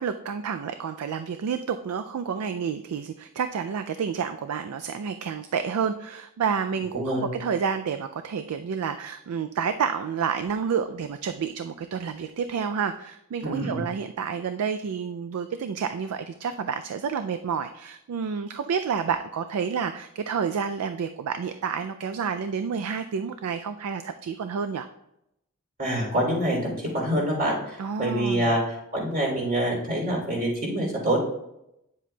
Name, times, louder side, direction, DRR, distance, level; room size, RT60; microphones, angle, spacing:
voice 1, 0.0-24.9 27.8-28.6, right 6 dB, 90° right, 9 dB, 0.4 m, -29 dB
voice 2, 6.9-7.3 13.4-13.8 25.8-28.6 28.9-31.2, right 1 dB, 45° right, -2 dB, 3.1 m, -26 dB
9.7 x 7.4 x 2.3 m, 0.84 s
head